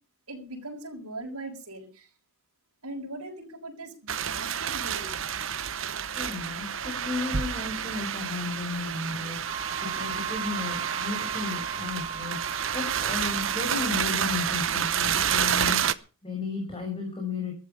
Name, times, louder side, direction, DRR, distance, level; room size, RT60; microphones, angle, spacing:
voice 1, 0.3-2.1 2.8-5.2, right 1 dB, 85° right, -1 dB, 6.9 m, -40 dB
sound 1, 4.1-15.9, right 8 dB, 60° right, 0.9 m, -29 dB
voice 2, 6.2-17.5, left 4 dB, 25° left, 2 dB, 6.2 m, -34 dB
Wind instrument woodwind instrument, 9.4-13.9, right 6 dB, 25° right, 0.8 m, -38 dB
14.5 x 14.5 x 5.6 m, 0.34 s
head